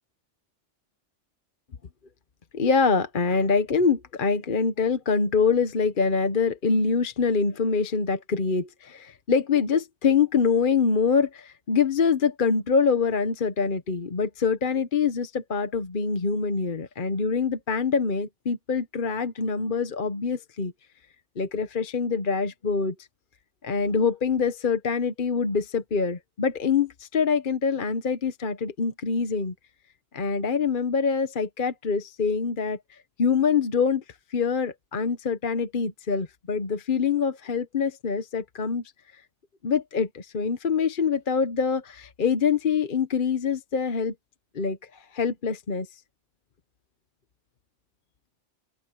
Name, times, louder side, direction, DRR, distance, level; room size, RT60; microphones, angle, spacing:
voice 1, 2.5-20.7 21.4-22.9 23.6-29.5 30.1-34.0 34.3-38.8 39.6-44.1 44.5-45.9, left 5 dB, 45° left, 1.1 m, -25 dB
open air
omnidirectional pair, 1.2 m